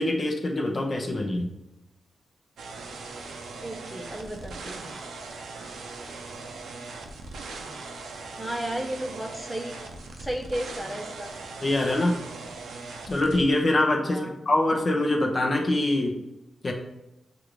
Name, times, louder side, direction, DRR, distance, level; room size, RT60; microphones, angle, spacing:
voice 1, 0.0-1.5 11.6-12.1 13.1-16.1 16.6-16.7, left 1 dB, 40° left, 1 dB, 0.7 m, -24 dB
sound 1, 2.6-13.4, right 3 dB, 90° right, 0.5 m, -40 dB
voice 2, 3.6-4.8 8.4-9.8 10.2-11.3 14.0-14.3, right 1 dB, 5° right, 0 dB, 0.7 m, -33 dB
6.4 x 2.5 x 3.1 m, 0.92 s
cardioid pair, 85°, 0 cm